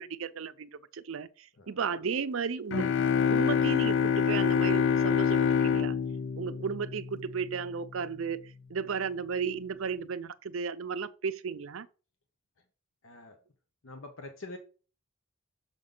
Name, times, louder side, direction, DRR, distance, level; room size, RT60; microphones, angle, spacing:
voice 1, 0.0-3.0 3.2-6.0 6.4-11.9, right 6 dB, 90° right, 0.5 m, -34 dB
sound 1, 2.7-7.4, left 7 dB, 60° left, 0.4 m, -26 dB
voice 2, 13.0-13.4 13.8-14.6, left 2 dB, 80° left, 0.9 m, -44 dB
6.6 x 5.3 x 3.8 m
head